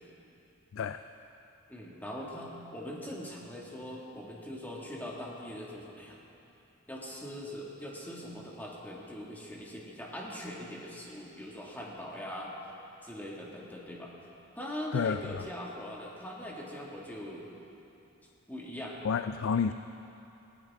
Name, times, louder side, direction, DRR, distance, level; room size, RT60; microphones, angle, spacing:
voice 1, 0.7-1.0 14.9-15.4 19.0-19.7, left 6 dB, 70° left, 10 dB, 0.4 m, -30 dB
voice 2, 1.7-6.2 6.9-12.6 13.0-14.1 14.6-17.5 18.5-19.0, equal, 10° left, -4 dB, 2.0 m, -41 dB
18.5 x 17.0 x 3.7 m, 2.9 s
head